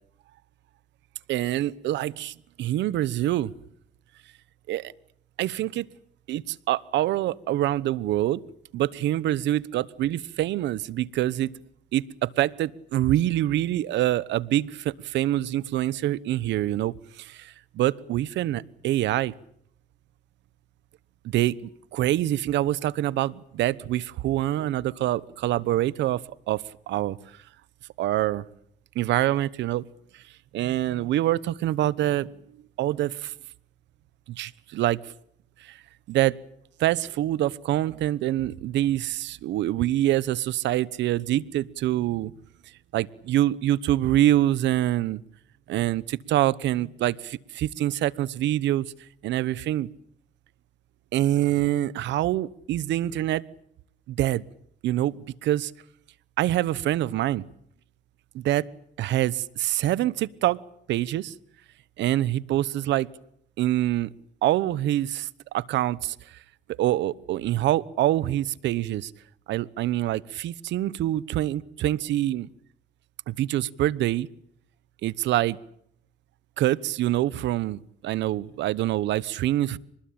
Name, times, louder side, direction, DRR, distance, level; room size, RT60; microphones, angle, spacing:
voice 1, 1.3-3.5 4.7-4.9 5.4-5.9 6.3-8.4 8.7-11.5 11.9-19.3 21.2-27.2 28.0-28.4 28.9-29.8 30.5-32.3 32.8-33.3 34.3-35.0 35.6-35.8 36.1-36.4 36.8-42.3 42.9-45.2 45.7-48.9 49.2-49.9 51.1-53.4 54.1-54.4 54.8-55.1 55.4-55.7 56.4-57.4 58.3-58.7 59.0-60.6 60.9-61.3 62.0-63.1 63.6-64.1 64.4-66.1 66.8-69.1 69.5-72.5 73.3-74.3 75.0-75.6 76.6-79.8, right 14 dB, 80° right, 20 dB, 1.0 m, -25 dB
26.0 x 20.5 x 8.8 m, 0.68 s
supercardioid pair, 75°, 18 cm